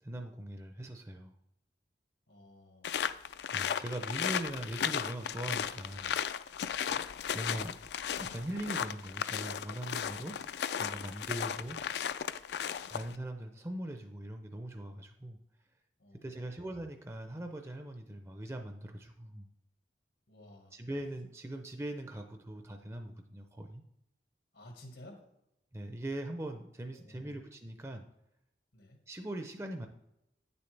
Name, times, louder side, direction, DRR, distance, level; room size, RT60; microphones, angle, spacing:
voice 1, 0.0-1.3 3.5-6.1 7.3-7.7 8.2-10.4 10.8-11.8 12.9-15.4 16.2-19.5 20.7-23.8 25.7-28.1 29.1-29.9, right 1 dB, 15° right, 5 dB, 0.5 m, -41 dB
voice 2, 2.3-3.0 6.8-7.0 11.4-11.8 12.8-13.0 16.0-16.6 20.3-20.8 24.5-25.2 26.9-27.4 28.7-29.0, left 1 dB, 90° left, 3 dB, 1.7 m, -55 dB
sound 1, 2.8-13.1, left 8 dB, 70° left, 0.3 m, -35 dB
9.3 x 7.0 x 3.3 m, 0.83 s
head